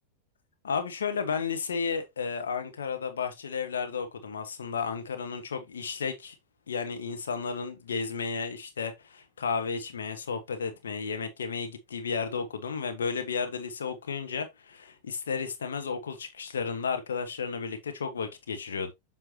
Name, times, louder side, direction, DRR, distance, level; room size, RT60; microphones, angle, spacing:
voice 1, 0.6-6.4 6.7-18.9, left 5 dB, 65° left, 1.3 m, -33 dB
7.9 x 5.5 x 2.8 m
figure-of-eight pair, 90°, 0 cm